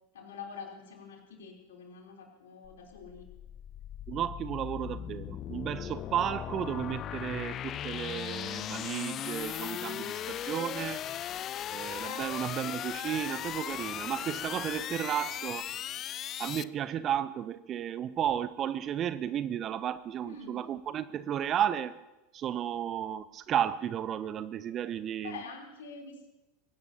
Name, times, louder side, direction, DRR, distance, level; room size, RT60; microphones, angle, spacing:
voice 1, 0.1-3.3 12.0-12.2 20.2-20.6 25.2-26.3, left 5 dB, 65° left, 0 dB, 3.4 m, -46 dB
sound 1, 2.6-16.6, left 11 dB, 35° left, 0.4 m, -38 dB
voice 2, 4.1-11.0 11.7-15.7 16.4-22.0 22.3-25.4, right 10 dB, 35° right, 15 dB, 0.5 m, -33 dB
22.5 x 17.0 x 2.8 m, 1.0 s
figure-of-eight pair, 80°, 0 cm